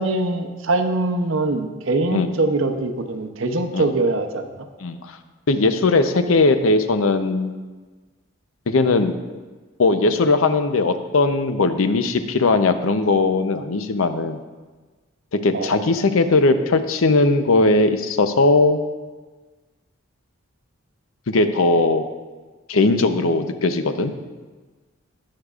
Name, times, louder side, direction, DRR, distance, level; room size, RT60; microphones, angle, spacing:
voice 1, 0.0-4.7 15.5-15.7, right 2 dB, 75° right, 7 dB, 0.8 m, -23 dB
voice 2, 4.8-5.2 5.5-7.5 8.7-9.1 9.8-14.4 15.3-18.8 21.3-22.0 22.7-24.1, left 3 dB, 90° left, 9 dB, 0.7 m, -19 dB
19.0 x 6.6 x 2.4 m, 1.3 s
head